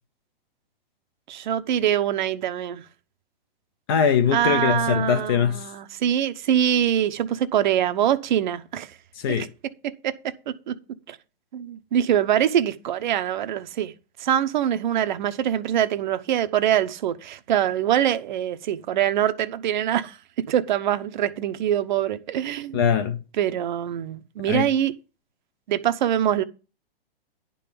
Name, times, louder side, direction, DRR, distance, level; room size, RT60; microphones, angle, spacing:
voice 1, 1.3-2.8 4.3-8.9 9.8-10.7 11.1-11.2 11.5-13.9 14.2-20.2 20.5-22.8 23.4-24.9 25.7-26.4, right 10 dB, 50° right, 0.8 m, -24 dB
voice 2, 3.9-5.7 9.1-9.5 22.7-23.2 24.5-24.7, left 7 dB, 25° left, 0.6 m, -22 dB
10.5 x 3.8 x 6.8 m
hypercardioid pair, 160°, 30 cm